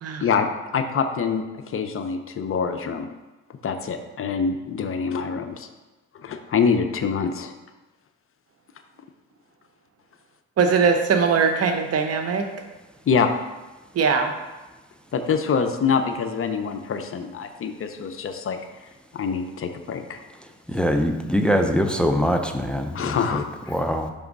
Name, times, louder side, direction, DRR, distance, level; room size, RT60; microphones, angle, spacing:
voice 1, 0.7-3.1 3.6-5.7 6.1-7.5 13.1-13.3 15.1-18.6 19.1-20.2 22.9-23.7, left 6 dB, 45° left, 7 dB, 0.6 m, -25 dB
voice 2, 10.6-12.5 13.9-14.3, right 5 dB, 55° right, 5 dB, 0.8 m, -20 dB
voice 3, 20.7-23.4 23.7-24.1, equal, 5° left, 5 dB, 0.5 m, -23 dB
5.9 x 3.5 x 5.2 m, 1.1 s
cardioid pair, 90°, 30 cm